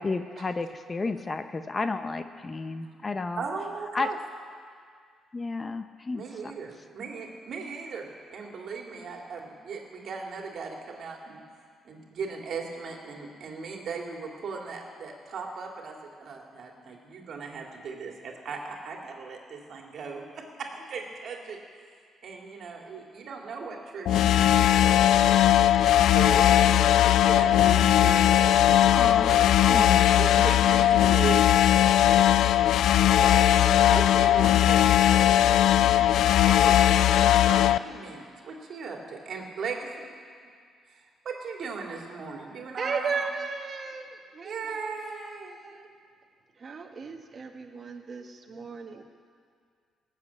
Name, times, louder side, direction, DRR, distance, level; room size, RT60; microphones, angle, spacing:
voice 1, 0.0-3.4 3.9-4.1 5.3-6.5 27.8-27.9 28.9-29.3 29.6-30.4, left 3 dB, 30° left, 9 dB, 0.7 m, -32 dB
voice 2, 3.4-4.2 6.1-8.1 8.3-11.4 11.8-15.9 16.2-21.6 22.2-25.5 26.1-28.9 29.2-29.5 30.2-31.5 31.9-32.4 32.8-37.0 37.5-40.1 41.2-43.2 44.4-45.6, right 5 dB, 60° right, 1 dB, 2.4 m, -38 dB
sound 1, 24.1-37.8, left 11 dB, 80° left, 0.3 m, -19 dB
voice 3, 42.8-45.9 46.6-49.0, right 5 dB, 40° right, 4 dB, 1.5 m, -36 dB
18.5 x 7.6 x 8.4 m, 2.1 s
cardioid pair, 90°, 0 cm